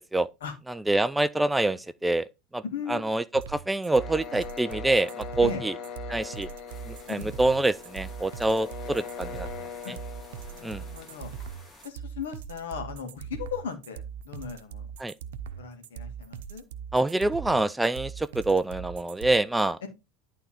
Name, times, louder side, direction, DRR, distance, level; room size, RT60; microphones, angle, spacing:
voice 1, 0.7-2.3 2.5-2.6 2.9-5.7 6.1-6.5 6.9-9.5 9.9-10.0 10.6-10.8 15.0-15.1 16.9-19.8, right 2 dB, 5° right, 0.4 m, -26 dB
voice 2, 2.7-3.0 5.4-5.6 7.2-7.3 9.8-10.0 10.5-11.3 11.8-14.9 15.6-16.6, left 7 dB, 65° left, 2.0 m, -37 dB
sound 1, 3.3-19.3, right 8 dB, 60° right, 0.6 m, -40 dB
sound 2, 3.9-11.7, left 6 dB, 40° left, 1.8 m, -41 dB
sound 3, 6.7-11.9, left 2 dB, 20° left, 3.4 m, -53 dB
11.0 x 3.7 x 4.4 m
figure-of-eight pair, 80°, 0 cm